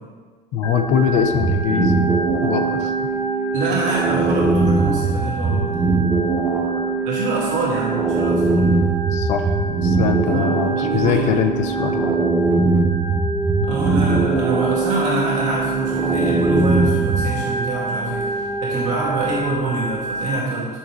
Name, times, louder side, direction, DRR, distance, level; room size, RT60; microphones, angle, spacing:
voice 1, 0.5-2.1 2.4-2.9 9.1-9.5 9.8-12.1, left 6 dB, 35° left, 7 dB, 0.6 m, -22 dB
Organ, 0.6-20.3, right 2 dB, 10° left, 0.9 m, -27 dB
sound 1, 1.3-17.4, right 4 dB, 10° right, 0.4 m, -21 dB
voice 2, 3.5-5.7 7.0-8.7 10.3-11.3 13.6-20.7, right 2 dB, 35° right, -6 dB, 1.8 m, -25 dB
11.0 x 6.5 x 3.0 m, 1.5 s
cardioid pair, 175°, 20 cm